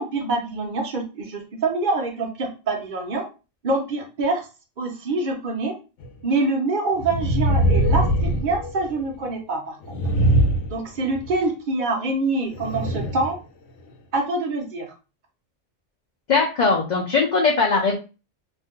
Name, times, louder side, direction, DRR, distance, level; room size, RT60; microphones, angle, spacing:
voice 1, 0.0-3.3 3.6-4.5 4.8-5.7 6.2-9.8 10.7-13.4 14.1-14.9, right 3 dB, 50° right, 3 dB, 0.7 m, -25 dB
sound 1, 6.0-6.1 7.0-9.1 9.8-11.4 12.5-13.3 13.9-14.0, right 1 dB, 85° left, 0.9 m, -22 dB
voice 2, 16.3-18.0, left 4 dB, 50° left, 0 dB, 0.5 m, -20 dB
2.5 x 2.1 x 3.6 m, 0.31 s
omnidirectional pair, 1.2 m